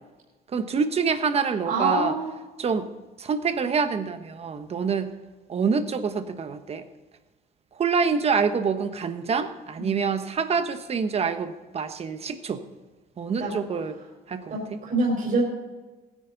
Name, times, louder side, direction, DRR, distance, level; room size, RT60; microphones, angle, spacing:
voice 1, 0.5-2.1 2.6-2.9 3.2-5.1 5.5-6.8 7.8-12.6 13.2-14.0 14.3-14.4, right 5 dB, 35° right, 9 dB, 1.2 m, -26 dB
voice 2, 1.6-2.3 9.8-10.0 13.4-13.5 14.5-15.4, right 2 dB, 55° right, -3 dB, 4.5 m, -25 dB
16.5 x 10.5 x 4.0 m, 1.2 s
cardioid pair, 110°, 17 cm